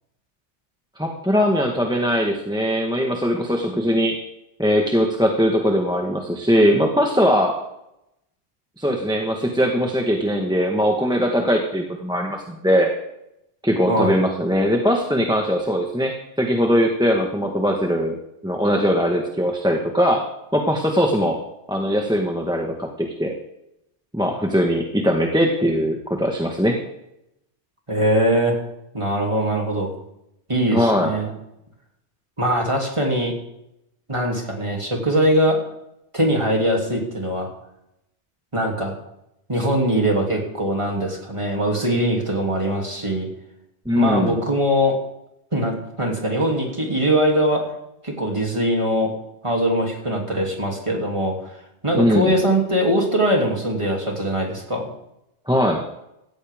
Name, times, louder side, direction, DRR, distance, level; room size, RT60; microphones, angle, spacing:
voice 1, 1.0-4.2 4.6-7.6 8.8-12.9 13.6-18.2 18.4-20.2 20.5-21.4 21.7-23.3 24.1-26.8 30.7-31.1 43.8-44.4 51.9-52.3 55.5-55.8, equal, 5° right, 1 dB, 1.4 m, -20 dB
voice 2, 27.9-28.6 28.9-29.9 30.5-31.3 32.4-33.3 34.1-35.6 36.1-37.5 38.5-38.9 39.5-43.3 43.9-45.0 45.5-47.6 48.0-49.1 49.4-51.5 51.8-54.9, equal, 25° right, 0 dB, 3.0 m, -21 dB
17.0 x 14.0 x 3.6 m, 0.84 s
omnidirectional pair, 1.2 m